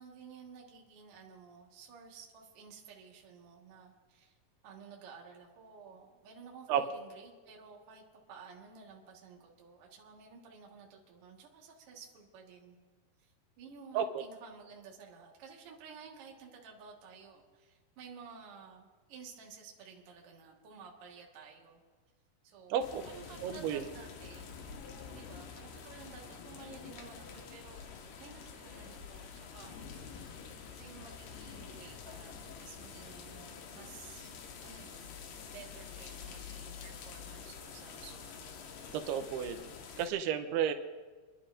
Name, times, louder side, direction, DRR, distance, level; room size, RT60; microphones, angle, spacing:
voice 1, 0.0-4.4 4.6-8.0 8.3-12.8 13.2-21.8 22.4-24.5 25.1-27.9 28.2-30.0 30.8-34.3 34.6-35.2 35.5-38.6, right 5 dB, 50° right, 0 dB, 1.8 m, -53 dB
voice 2, 22.7-23.0 23.4-23.9 38.9-39.7 40.0-40.7, right 8 dB, 90° right, 8 dB, 2.7 m, -32 dB
sound 1, 22.8-40.1, left 6 dB, 85° left, 3.2 m, -48 dB
27.5 x 11.0 x 2.5 m, 1.4 s
omnidirectional pair, 4.6 m